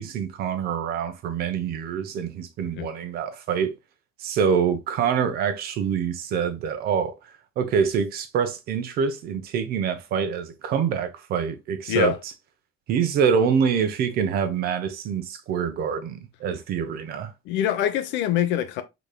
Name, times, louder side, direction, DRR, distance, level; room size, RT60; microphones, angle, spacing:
voice 1, 0.0-3.7 4.2-7.2 7.6-12.1 12.9-17.3, right 7 dB, 55° right, 0.9 m, -25 dB
voice 2, 17.5-18.8, left 11 dB, 75° left, 0.8 m, -24 dB
5.1 x 4.0 x 2.2 m
cardioid pair, 155°, 19 cm